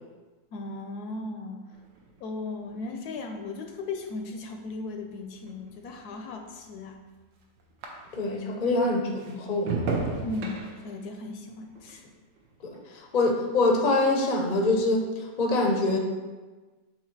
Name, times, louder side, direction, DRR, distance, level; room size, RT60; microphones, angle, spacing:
voice 1, 0.5-1.8 2.2-7.0 10.2-12.1, left 3 dB, 70° left, 5 dB, 1.0 m, -37 dB
sound 1, 1.7-8.5 8.8-13.4 13.7-14.2, right 3 dB, 85° right, 1.5 m, -38 dB
voice 2, 8.1-9.8 12.6-12.7 13.1-15.1 15.4-16.0, left 2 dB, 50° left, 1 dB, 0.5 m, -24 dB
7.2 x 2.9 x 4.5 m, 1.3 s
omnidirectional pair, 1.9 m